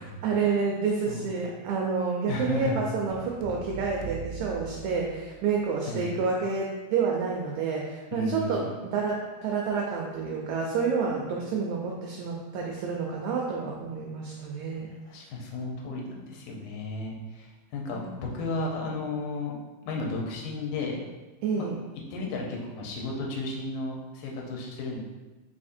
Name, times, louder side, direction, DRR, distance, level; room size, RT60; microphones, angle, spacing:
voice 1, 0.0-14.9 17.9-18.1 21.4-21.8, right 5 dB, 80° right, -1 dB, 1.7 m, -29 dB
voice 2, 2.3-2.9 5.9-6.3 8.1-8.7 14.9-19.6 19.9-21.0 21.6-21.7 22.1-25.0, left 2 dB, 75° left, -1 dB, 1.9 m, -34 dB
sound 1, 3.1-5.6, right 3 dB, 90° left, 2.3 m, -41 dB
4.1 x 4.1 x 2.6 m, 1.2 s
omnidirectional pair, 3.8 m